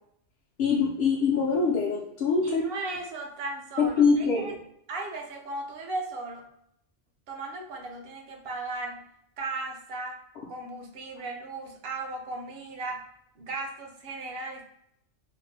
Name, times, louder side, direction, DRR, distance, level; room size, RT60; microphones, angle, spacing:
voice 1, 0.6-2.6 3.8-4.6, left 5 dB, 65° left, -3 dB, 0.7 m, -24 dB
voice 2, 2.4-4.6 4.9-6.5 7.3-9.1 9.4-10.2 10.5-13.0 13.4-14.6, right 2 dB, 65° right, 3 dB, 0.7 m, -36 dB
2.5 x 2.1 x 3.1 m, 0.74 s
omnidirectional pair, 1.3 m